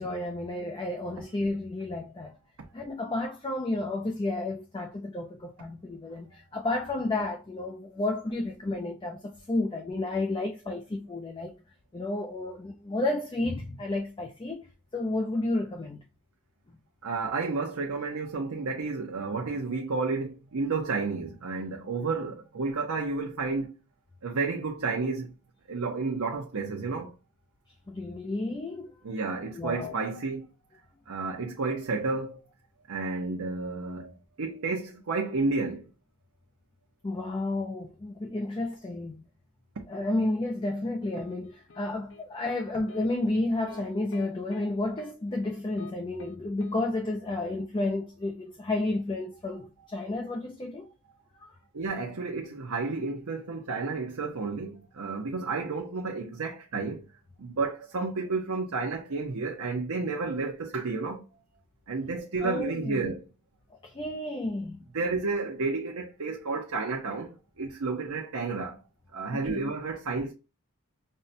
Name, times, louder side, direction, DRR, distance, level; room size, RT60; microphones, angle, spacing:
voice 1, 0.0-2.4 2.7-11.5 11.9-14.7 14.9-16.0 16.7-16.8 27.9-29.0 29.5-29.9 37.0-39.2 39.9-50.9 62.4-63.1 63.8-64.9 69.3-69.6, left 2 dB, 20° left, 0.4 m, -31 dB
voice 2, 17.0-23.8 24.2-25.3 25.7-27.1 29.0-30.5 31.1-32.4 32.9-35.9 51.7-57.1 57.4-61.2 61.9-63.2 64.9-68.8 69.1-70.3, right 3 dB, 70° right, 0.7 m, -31 dB
sound 1, 41.1-42.6 42.9-43.1 43.7-43.8 44.1-44.7 45.0-45.1 45.4-45.9 46.2-46.4 46.6-46.8, left 3 dB, 60° left, 0.7 m, -48 dB
5.3 x 2.2 x 2.6 m
head